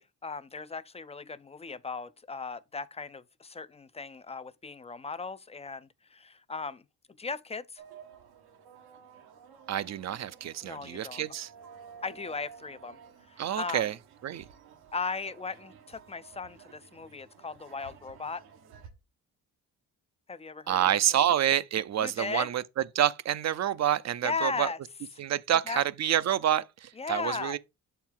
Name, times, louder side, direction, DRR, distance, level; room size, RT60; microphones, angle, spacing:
voice 1, 0.0-6.8 7.2-7.8 10.6-11.2 12.0-13.0 13.3-13.8 14.9-18.4 20.3-21.3 22.0-22.5 24.2-24.8 25.7-25.8 27.0-27.6, left 4 dB, 20° left, 0.3 m, -37 dB
sound 1, 7.8-18.9, right 7 dB, 85° right, 1.2 m, -53 dB
voice 2, 9.7-11.5 13.4-13.9 14.2-14.4 20.7-22.6 22.9-24.7 25.2-27.6, right 11 dB, 45° right, 0.5 m, -28 dB
7.2 x 4.5 x 3.7 m
cardioid pair, 85°, 37 cm